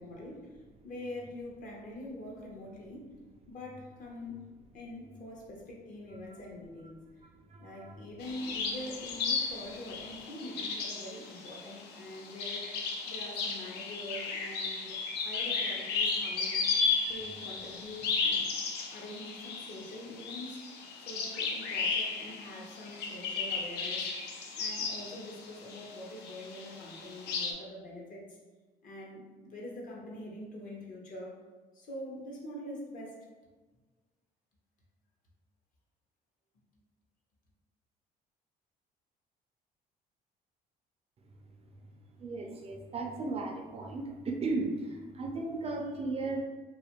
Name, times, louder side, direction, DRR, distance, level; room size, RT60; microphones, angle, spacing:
voice 1, 0.0-3.1 3.5-4.4 4.7-7.0 7.6-16.7 17.1-18.5 18.9-20.6 21.0-24.1 24.6-28.2 28.8-31.4 31.7-33.2, left 1 dB, 55° left, -2 dB, 0.8 m, -44 dB
voice 2, 7.5-8.0 42.2-46.5, right 3 dB, 35° right, 2 dB, 0.4 m, -35 dB
sound 1, 8.2-25.9 26.2-27.5, left 4 dB, 80° left, 0.4 m, -34 dB
2.5 x 2.4 x 2.9 m, 1.3 s
cardioid pair, 110°, 17 cm